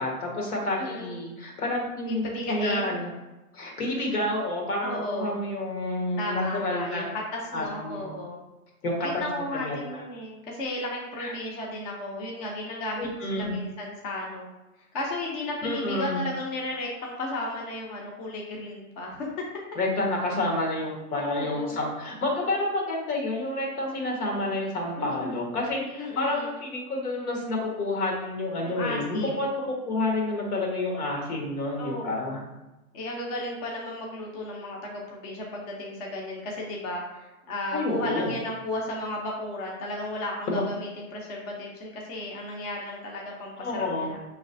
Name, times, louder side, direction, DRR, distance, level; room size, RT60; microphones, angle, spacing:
voice 1, 0.0-3.1 3.5-7.0 7.5-8.1 8.8-9.2 9.5-10.0 11.2-11.3 13.0-13.6 15.6-16.2 19.7-32.4 37.7-38.3 40.5-40.6 43.6-44.1, left 2 dB, 80° left, -1 dB, 1.4 m, -29 dB
voice 2, 0.8-1.2 2.0-3.0 4.8-5.4 6.2-7.1 7.3-8.4 9.2-14.5 14.9-19.3 21.1-21.9 25.0-25.5 26.0-26.5 28.6-29.5 31.8-32.4 32.9-44.2, left 1 dB, 30° left, -2 dB, 0.5 m, -34 dB
4.9 x 3.1 x 2.6 m, 1.0 s
hypercardioid pair, 155°, 44 cm